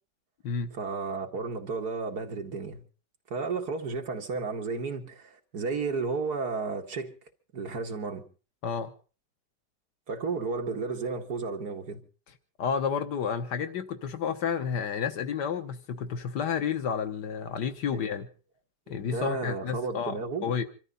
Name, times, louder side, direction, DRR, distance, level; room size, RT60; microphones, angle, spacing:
voice 1, 0.7-2.8 3.3-7.1 7.5-8.2 10.1-12.0 19.0-20.5, right 4 dB, 70° right, 2.5 m, -32 dB
voice 2, 12.6-18.3 18.9-20.6, left 6 dB, 85° left, 1.8 m, -31 dB
26.5 x 13.0 x 4.0 m
omnidirectional pair, 1.8 m